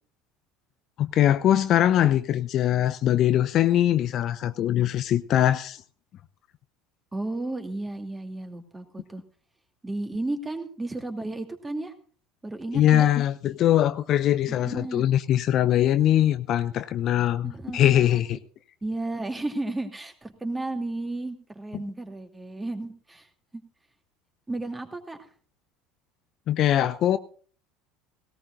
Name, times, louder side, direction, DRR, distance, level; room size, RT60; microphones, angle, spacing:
voice 1, 1.0-5.8 12.7-18.4 26.5-27.2, left 11 dB, 50° left, 0.6 m, -22 dB
voice 2, 7.1-9.2 9.8-11.9 12.4-13.0 14.5-15.0 17.4-18.2 18.8-23.3 24.5-25.2, right 2 dB, 15° right, 2.7 m, -33 dB
18.0 x 17.5 x 2.5 m
figure-of-eight pair, 70°, 0 cm